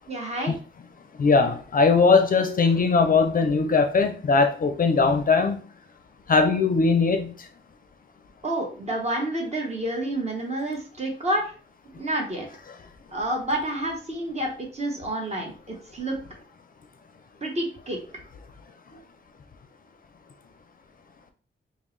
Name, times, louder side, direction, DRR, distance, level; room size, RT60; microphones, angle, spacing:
voice 1, 0.1-0.5 8.4-11.5 11.9-12.5 13.1-16.2 17.4-18.0, right 1 dB, 35° right, 1.0 m, -29 dB
voice 2, 1.2-5.6 6.3-7.3, left 4 dB, 45° left, 0.5 m, -20 dB
5.2 x 2.1 x 3.1 m
wide cardioid pair, 170°, 20 cm